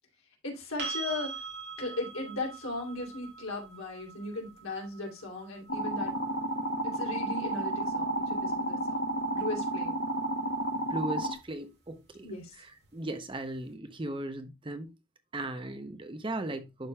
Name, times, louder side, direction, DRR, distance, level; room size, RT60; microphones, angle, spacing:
voice 1, 0.4-1.4 1.8-6.1 6.8-9.0 9.3-10.0 12.2-12.5, left 2 dB, 80° left, 2.9 m, -37 dB
sound 1, 0.8-8.6 11.4-11.5, right 4 dB, 55° right, 2.6 m, -43 dB
sound 2, 5.7-11.3, right 1 dB, 45° left, 0.9 m, -31 dB
voice 2, 10.7-12.3 12.6-14.9 15.3-16.9, right 1 dB, 25° right, 0.7 m, -37 dB
11.0 x 5.1 x 2.3 m
head